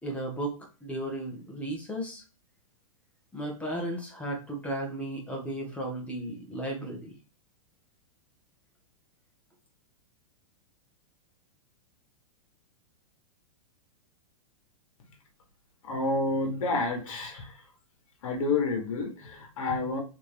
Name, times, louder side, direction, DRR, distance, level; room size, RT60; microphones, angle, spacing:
voice 1, 0.0-2.2 3.3-7.1, right 1 dB, 5° left, 0 dB, 1.5 m, -35 dB
voice 2, 15.8-17.7 18.2-20.0, left 3 dB, 70° left, 2 dB, 1.6 m, -29 dB
3.9 x 3.5 x 3.4 m, 0.34 s
hypercardioid pair, 120°, 18 cm